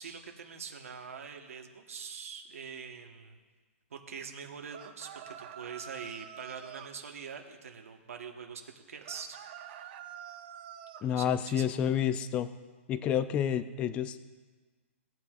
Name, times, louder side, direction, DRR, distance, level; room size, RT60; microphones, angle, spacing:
voice 1, 0.0-3.4 3.9-9.4 11.0-11.9, right 6 dB, 90° right, 3 dB, 1.3 m, -44 dB
sound 1, 4.7-6.9 9.0-11.1, right 9 dB, 40° right, 0.6 m, -46 dB
voice 2, 11.0-12.5 12.9-14.2, left 9 dB, 15° left, 13 dB, 0.3 m, -29 dB
18.0 x 9.2 x 2.5 m, 1.4 s
hypercardioid pair, 160°, 7 cm